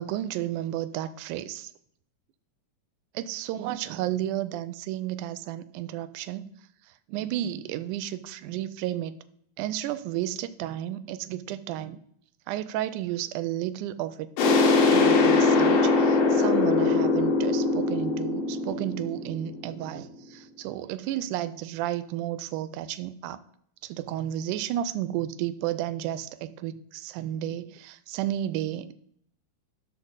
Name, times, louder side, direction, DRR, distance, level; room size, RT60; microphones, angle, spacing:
voice 1, 0.0-1.7 3.1-6.5 7.1-9.2 9.6-12.0 12.5-14.3 14.9-23.4 23.8-28.9, right 12 dB, 80° right, 12 dB, 2.0 m, -32 dB
sound 1, 14.4-19.9, left 3 dB, 75° left, 2.9 m, -22 dB
13.0 x 6.0 x 4.0 m, 0.67 s
omnidirectional pair, 3.7 m